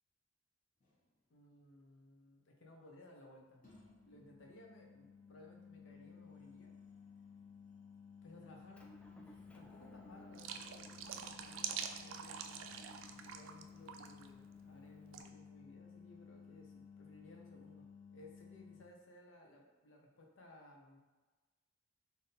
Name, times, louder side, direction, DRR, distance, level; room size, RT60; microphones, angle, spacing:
sound 1, 0.8-1.0 3.6-18.8, left 6 dB, 45° left, 0.9 m, -57 dB
voice 1, 1.3-3.6 4.0-6.7 8.2-8.8 9.2-12.8 13.3-21.0, left 1 dB, 75° left, 0 dB, 0.7 m, -60 dB
Motor vehicle (road) / Engine, 8.7-15.2, equal, 5° left, 0.3 m, -62 dB
sound 2, 10.3-13.6 13.9-14.3 15.1-15.3, right 8 dB, 85° right, 0.3 m, -45 dB
3.5 x 2.7 x 4.1 m, 1.2 s
head